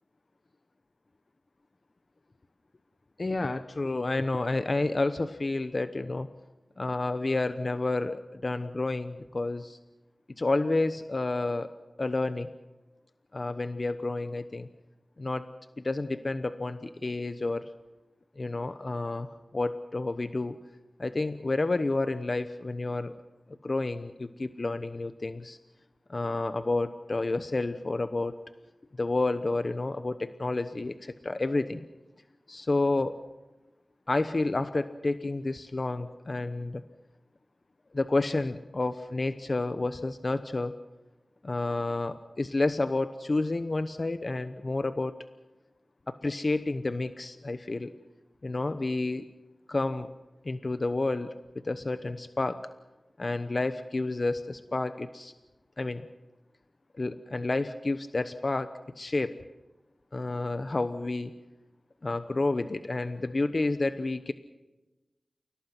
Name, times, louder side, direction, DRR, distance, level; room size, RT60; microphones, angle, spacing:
voice 1, 3.2-6.3 6.8-9.8 10.4-11.7 12.0-12.5 13.3-14.7 15.2-15.5 15.8-17.7 18.4-20.5 21.0-23.1 23.6-25.6 26.1-28.3 29.0-31.8 32.5-33.2 34.1-36.8 37.9-40.7 41.4-45.2 46.1-47.9 48.4-49.3 49.7-50.1 50.4-51.3 51.6-52.6 53.2-55.3 55.8-56.1 57.0-59.3 60.1-61.3 62.0-64.3, left 2 dB, 50° left, 10 dB, 1.0 m, -30 dB
29.5 x 18.0 x 6.1 m, 1.1 s
cardioid pair, 40°, 0 cm